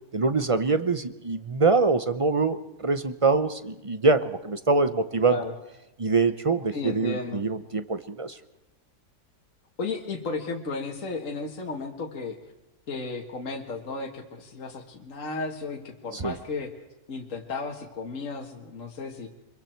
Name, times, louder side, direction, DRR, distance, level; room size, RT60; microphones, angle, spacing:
voice 1, 0.1-5.4 6.0-8.4 16.1-16.4, right 3 dB, 45° right, 12 dB, 0.4 m, -24 dB
voice 2, 6.7-7.4 9.8-12.4 12.9-16.7 17.1-19.3, left 3 dB, 50° left, 1 dB, 2.0 m, -34 dB
26.5 x 22.5 x 4.5 m, 1.0 s
omnidirectional pair, 1.8 m